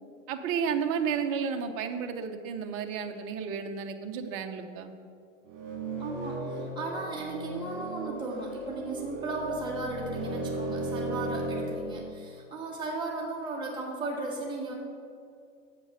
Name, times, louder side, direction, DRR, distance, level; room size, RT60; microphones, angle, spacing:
voice 1, 0.3-4.9, right 6 dB, 35° right, 6 dB, 0.8 m, -32 dB
sound 1, 5.5-11.7, right 2 dB, 50° right, 2.3 m, -35 dB
voice 2, 6.0-14.7, right 2 dB, 10° right, -4 dB, 1.8 m, -36 dB
7.6 x 7.0 x 5.8 m, 2.4 s
hypercardioid pair, 115°, 39 cm